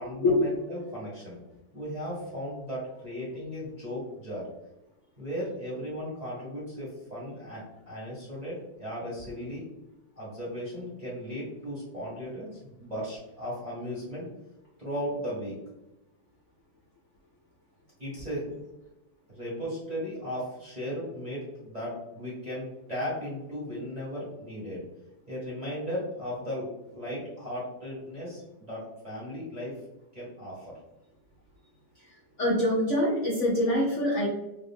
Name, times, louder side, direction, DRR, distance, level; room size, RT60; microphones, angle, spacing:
voice 1, 0.0-1.4 1.7-4.5 5.2-9.6 10.2-12.5 12.8-14.3 14.8-15.5 18.0-18.6 19.3-24.8 25.3-29.7 30.1-30.8, equal, 25° right, -8 dB, 1.1 m, -36 dB
voice 2, 32.4-34.3, left 1 dB, 55° left, -6 dB, 0.9 m, -24 dB
3.5 x 2.5 x 3.6 m, 0.95 s
omnidirectional pair, 2.2 m